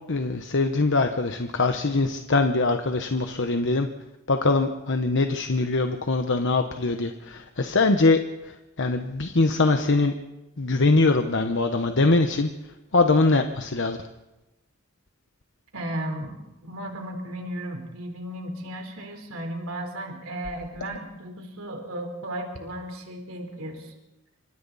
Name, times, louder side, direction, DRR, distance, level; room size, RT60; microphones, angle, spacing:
voice 1, 0.1-3.9 4.3-8.2 8.8-10.1 10.6-12.5 12.9-14.0, left 3 dB, 60° left, 6 dB, 1.1 m, -22 dB
voice 2, 15.7-16.4 16.6-23.9, right 1 dB, 70° right, 3 dB, 4.1 m, -35 dB
28.5 x 26.0 x 4.2 m, 0.99 s
head